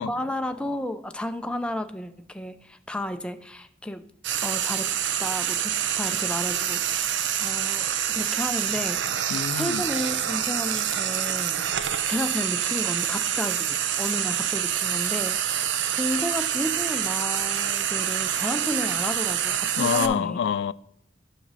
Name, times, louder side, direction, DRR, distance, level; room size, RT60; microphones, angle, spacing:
voice 1, 0.0-4.0 4.4-4.9 5.2-9.0 9.5-11.6 12.1-20.4, left 1 dB, 5° left, 0.4 m, -32 dB
Frying (food), 4.2-20.1, right 10 dB, 80° right, 0.6 m, -26 dB
voice 2, 9.3-9.8 19.8-20.7, left 7 dB, 75° left, 0.3 m, -26 dB
9.2 x 6.0 x 4.0 m
head